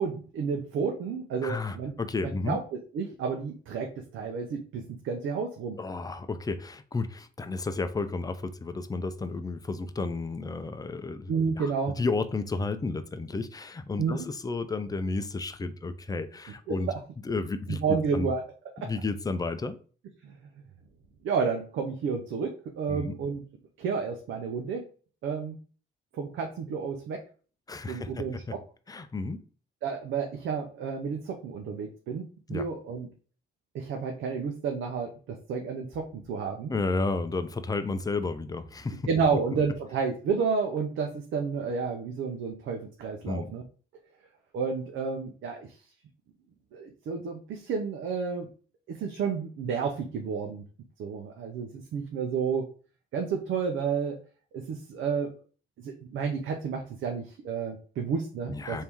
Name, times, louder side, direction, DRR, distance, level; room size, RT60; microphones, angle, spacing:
voice 1, 0.0-1.9 2.2-5.8 11.3-12.0 14.0-14.3 16.7-17.0 17.7-18.4 18.8-18.9 20.2-20.4 21.2-23.4 23.8-24.8 25.2-25.6 26.1-27.2 27.9-28.6 29.8-33.1 33.7-36.7 39.1-43.6 44.5-45.8 46.7-48.5 48.9-50.6 51.0-52.7 53.1-54.2 54.5-55.4 55.8-58.8, right 5 dB, 80° right, 3 dB, 0.7 m, -31 dB
voice 2, 1.4-2.6 5.8-11.7 12.0-16.9 17.2-18.3 18.8-19.8 22.9-23.2 27.7-28.6 28.9-29.4 32.5-32.6 36.7-39.1 43.3-43.5 58.5-58.8, left 3 dB, 20° left, 10 dB, 0.5 m, -32 dB
3.5 x 2.7 x 4.5 m, 0.40 s
cardioid pair, 90°, 20 cm